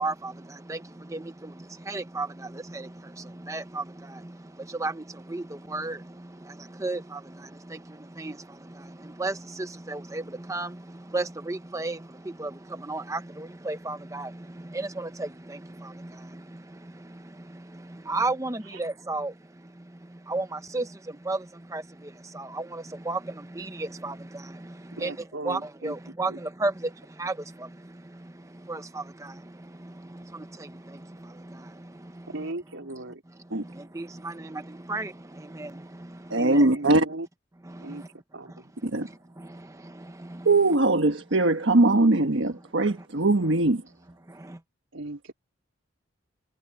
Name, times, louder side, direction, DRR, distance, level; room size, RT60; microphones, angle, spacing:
voice 1, 0.0-32.5 33.4-36.7 37.6-38.1 38.5-38.7 39.0-40.5 43.0-43.1 43.4-43.5 44.3-44.6, right 2 dB, 15° right, 0.8 m, -35 dB
voice 2, 24.9-25.9 26.3-26.4 32.3-33.2 36.6-37.3 37.8-38.0 38.3-38.7 44.9-45.3, right 2 dB, 90° right, 3.6 m, -37 dB
voice 3, 36.3-37.1 38.8-39.1 40.4-43.8, right 2 dB, 70° right, 1.3 m, -21 dB
head